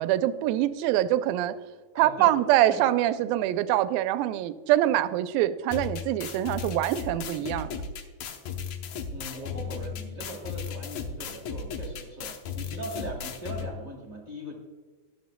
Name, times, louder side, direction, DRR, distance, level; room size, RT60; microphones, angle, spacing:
voice 1, 0.0-1.6 2.0-7.7, right 13 dB, 85° right, 12 dB, 2.3 m, -24 dB
voice 2, 1.9-2.3 2.7-2.8 9.1-14.5, right 1 dB, 45° right, 0 dB, 1.0 m, -39 dB
sound 1, 5.7-13.7, left 6 dB, 75° left, 1.6 m, -36 dB
12.5 x 11.5 x 2.2 m, 1.4 s
omnidirectional pair, 4.1 m